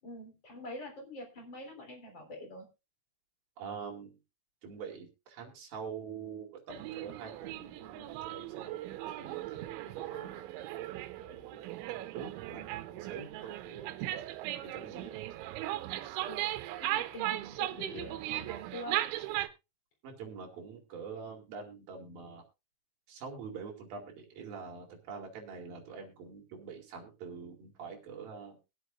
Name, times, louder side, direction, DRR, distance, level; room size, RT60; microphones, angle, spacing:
voice 1, 0.0-2.7 10.1-10.4 11.4-11.5 16.3-16.5 16.8-19.0, left 1 dB, 25° left, 1 dB, 3.7 m, -45 dB
voice 2, 3.6-4.2 4.6-10.4 10.7-10.8 11.2-13.9 14.6-15.2 20.0-22.4 23.1-28.6, right 6 dB, 55° right, 0 dB, 4.0 m, -45 dB
sound 1, 6.7-19.5, right 15 dB, 85° right, 3.1 m, -38 dB
23.0 x 8.0 x 2.5 m, 0.26 s
omnidirectional pair, 5.2 m